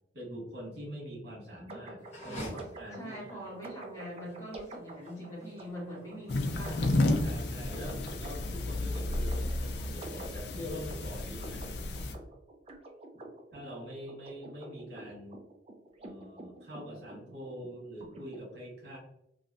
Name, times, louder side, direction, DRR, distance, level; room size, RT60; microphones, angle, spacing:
voice 1, 0.1-2.4 2.8-3.4 7.2-11.6 13.5-15.4 16.0-19.0, equal, 65° right, -4 dB, 1.5 m, -44 dB
sound 1, 1.7-18.4, right 2 dB, 35° right, 0.5 m, -48 dB
sound 2, 2.0-8.1, equal, 35° left, 1.3 m, -49 dB
voice 2, 2.2-2.7 2.9-7.1, equal, 20° left, -6 dB, 1.4 m, -43 dB
sound 3, 6.3-12.1, left 2 dB, 65° left, 0.4 m, -32 dB
3.0 x 2.6 x 2.6 m, 0.78 s
head